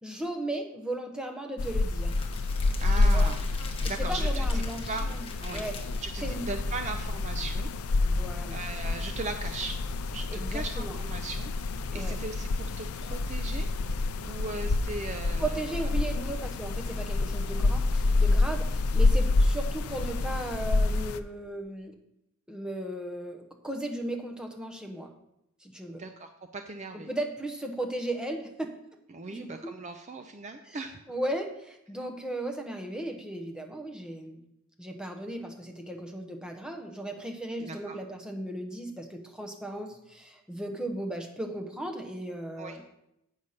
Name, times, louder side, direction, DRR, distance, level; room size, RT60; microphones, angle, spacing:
voice 1, 0.0-2.1 3.0-3.3 4.0-5.1 5.5-5.8 6.2-6.4 8.0-8.6 10.3-10.9 11.9-12.1 15.4-21.9 22.5-25.1 25.6-26.0 27.1-28.7 29.3-29.7 31.1-34.4 34.8-42.8, right 1 dB, 5° right, 3 dB, 0.9 m, -36 dB
sound 1, 1.6-21.2, left 3 dB, 80° left, 0.5 m, -28 dB
Crackle, 2.0-7.1, left 2 dB, 25° left, 1.1 m, -43 dB
voice 2, 2.8-3.4 3.8-5.1 5.4-5.7 6.0-7.7 8.5-9.8 10.1-15.9 25.9-27.1 29.1-31.0 37.6-38.0 42.6-42.8, right 3 dB, 30° right, 7 dB, 0.4 m, -38 dB
8.1 x 5.5 x 6.5 m, 0.83 s
head